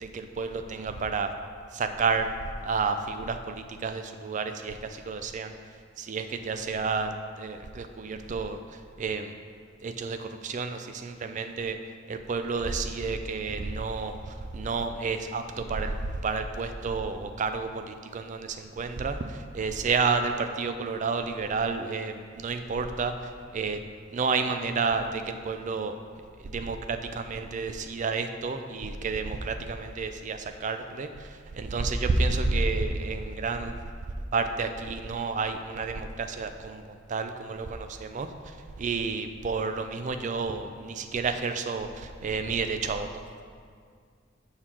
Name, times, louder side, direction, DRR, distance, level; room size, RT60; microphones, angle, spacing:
voice 1, 0.0-1.3 1.7-2.3 2.6-5.5 6.0-7.1 7.4-8.6 9.0-9.3 9.8-11.8 12.1-14.2 14.5-16.0 16.2-19.2 19.5-23.1 23.5-23.8 24.1-25.9 26.4-31.1 31.5-33.8 34.3-36.8 37.1-38.3 38.8-43.1, right 4 dB, 40° right, 8 dB, 0.4 m, -30 dB
6.5 x 3.7 x 5.9 m, 2.1 s
head